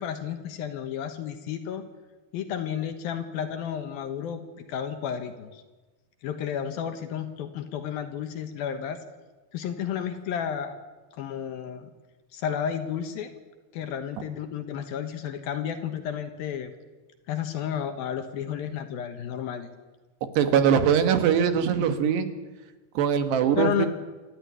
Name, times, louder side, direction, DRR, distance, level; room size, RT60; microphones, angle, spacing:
voice 1, 0.0-1.8 2.3-5.6 6.2-9.0 9.5-10.8 11.2-11.9 12.3-13.3 13.7-16.7 17.3-19.7 23.6-23.9, left 8 dB, 65° left, 8 dB, 2.7 m, -32 dB
voice 2, 20.4-22.3 23.0-23.9, right 8 dB, 75° right, 8 dB, 3.5 m, -22 dB
27.5 x 13.0 x 9.6 m, 1.3 s
omnidirectional pair, 5.0 m